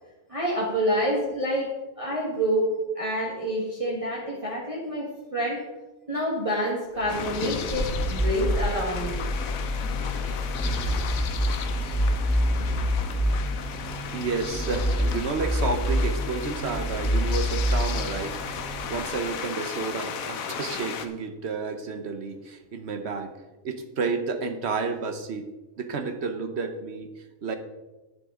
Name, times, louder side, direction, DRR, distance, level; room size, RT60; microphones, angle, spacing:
voice 1, 0.3-1.7 2.0-2.7 2.9-5.6 6.1-9.2 10.9-11.0, equal, 25° right, -4 dB, 1.6 m, -27 dB
sound 1, 6.9-19.0, equal, 45° left, 2.8 m, -27 dB
sound 2, 7.1-21.1, left 7 dB, 85° left, 1.2 m, -35 dB
voice 2, 14.1-23.4 23.6-25.5 25.8-27.6, right 4 dB, 55° right, 8 dB, 1.2 m, -31 dB
10.5 x 9.8 x 3.8 m, 1.1 s
omnidirectional pair, 1.4 m